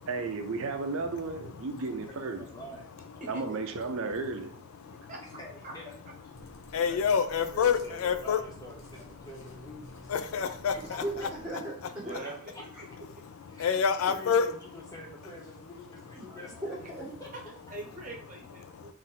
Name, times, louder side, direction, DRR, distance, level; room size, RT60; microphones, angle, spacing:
voice 1, 0.1-2.4 3.3-4.5, right 3 dB, 70° right, 0.5 m, -33 dB
voice 2, 2.1-3.0 5.4-5.9 6.9-7.0 7.5-10.1 10.7-11.0 12.1-12.7 13.5-16.6 17.2-17.3, left 1 dB, 15° left, 0.6 m, -47 dB
voice 3, 4.8-5.1 6.4-8.4 10.1-11.0 13.2-14.5 18.6-18.9, left 6 dB, 75° left, 0.4 m, -28 dB
sound 1, 6.2-11.6, equal, 55° left, 0.9 m, -52 dB
voice 4, 10.8-12.1 16.2-17.1, right 1 dB, 5° right, 1.6 m, -38 dB
voice 5, 11.8-12.5 17.3-18.9, right 2 dB, 35° right, 0.9 m, -43 dB
4.2 x 2.6 x 3.6 m
head